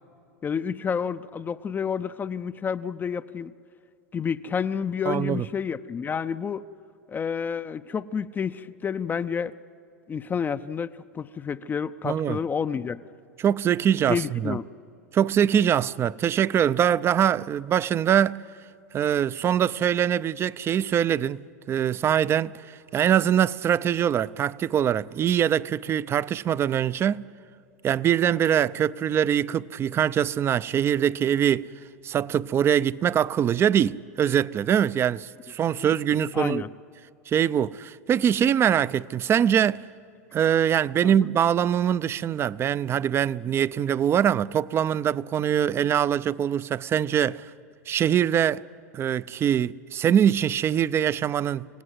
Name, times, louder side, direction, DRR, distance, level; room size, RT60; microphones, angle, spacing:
voice 1, 0.4-3.5 4.1-6.6 7.1-9.5 10.1-10.9 11.1-13.0 14.1-14.7 35.8-36.0 36.3-36.7 41.0-41.3, left 6 dB, 20° left, 0.5 m, -29 dB
voice 2, 5.1-5.5 12.0-12.4 13.4-14.6 15.1-18.4 18.9-27.2 27.8-31.7 32.0-36.6 37.3-39.8 40.3-47.5 47.9-48.6 48.9-51.7, right 9 dB, 30° right, 0.5 m, -23 dB
26.5 x 17.5 x 8.1 m
hypercardioid pair, 100°, 9 cm